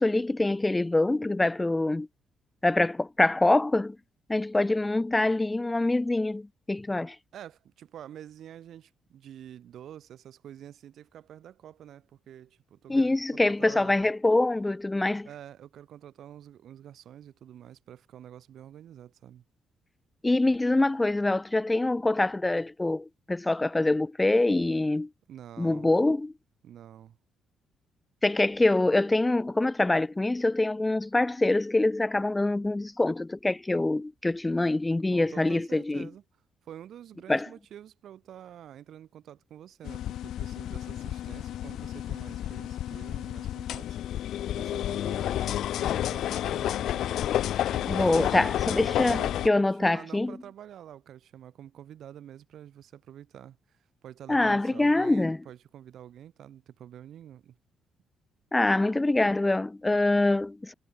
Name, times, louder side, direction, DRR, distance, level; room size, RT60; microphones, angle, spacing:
voice 1, 0.0-2.1 2.6-4.0 4.3-7.2 12.9-15.3 20.2-25.1 25.6-26.3 28.2-36.1 37.3-37.5 47.8-50.4 54.3-55.4 58.5-60.7, left 2 dB, 15° left, 0.6 m, -25 dB
voice 2, 7.3-14.1 15.2-19.4 25.3-25.9 26.6-27.2 35.1-36.2 36.6-44.0 44.5-47.2 47.7-48.6 49.0-57.6, right 10 dB, 70° right, 6.0 m, -47 dB
sound 1, 39.8-49.5, left 12 dB, 75° left, 0.4 m, -30 dB
cardioid pair, 90°, 0 cm